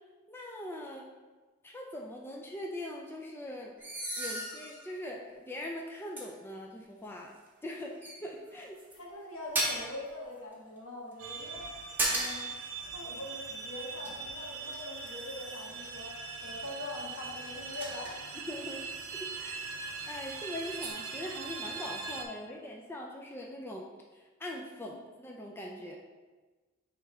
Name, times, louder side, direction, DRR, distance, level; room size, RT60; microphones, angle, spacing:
voice 1, 0.3-1.1 1.6-3.8 4.2-7.3 7.6-8.8 18.5-18.8 19.2-19.7 20.1-26.0, left 1 dB, 10° left, -1 dB, 0.4 m, -42 dB
sound 1, 3.8-4.9 5.5-5.6 6.2-6.3 7.5-7.7 8.0-9.0 9.5-10.0 11.5-12.5 12.8-13.0 13.7-15.7 17.2-18.6 19.6-19.7 20.0-20.3 20.8-20.9, right 1 dB, 10° right, 1.1 m, -36 dB
voice 2, 8.9-11.7 12.1-12.5 12.9-18.2 24.8-25.0, left 2 dB, 70° left, -3 dB, 1.5 m, -43 dB
sound 2, 11.2-22.2, right 4 dB, 75° right, 0.7 m, -41 dB
9.2 x 3.2 x 3.5 m, 1.3 s
head